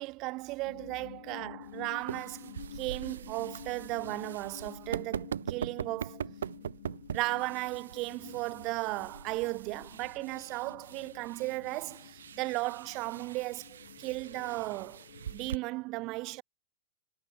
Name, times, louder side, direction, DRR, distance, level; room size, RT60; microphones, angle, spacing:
voice 1, 0.0-6.2 7.1-15.0 15.3-16.4, right 22 dB, 40° right, 0.4 m, -36 dB
sound 1, 0.6-15.5, left 11 dB, 60° left, 1.9 m, -50 dB
sound 2, 1.6-15.6, right 9 dB, 65° right, 1.1 m, -42 dB
figure-of-eight pair, 90°, 0 cm